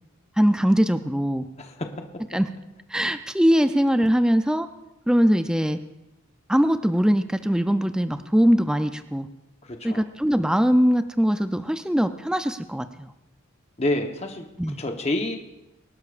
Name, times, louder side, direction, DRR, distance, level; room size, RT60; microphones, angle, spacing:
voice 1, 0.4-1.5 2.3-2.5 2.9-4.7 5.1-5.8 6.5-9.3 9.8-13.1 14.6-14.8, equal, 5° right, 9 dB, 0.4 m, -21 dB
voice 2, 1.6-1.9 9.6-10.0 13.8-14.5 14.8-15.4, left 1 dB, 30° left, 4 dB, 1.0 m, -28 dB
24.5 x 12.0 x 2.5 m, 0.95 s
head